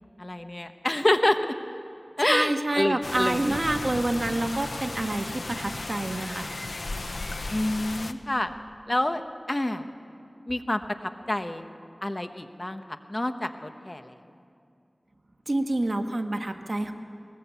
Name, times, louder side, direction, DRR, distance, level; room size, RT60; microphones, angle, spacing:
voice 1, 0.2-1.4 2.2-3.6 7.5-8.5 8.9-9.2 9.5-9.8 10.5-11.7 12.0-14.1, left 1 dB, 35° left, 8 dB, 1.1 m, -27 dB
voice 2, 2.2-6.5 15.5-16.9, right 1 dB, 55° right, 5 dB, 1.3 m, -27 dB
sound 1, 3.0-8.1, left 2 dB, 85° left, 0.8 m, -35 dB
20.5 x 19.0 x 8.3 m, 2.5 s
wide cardioid pair, 55°, 0 cm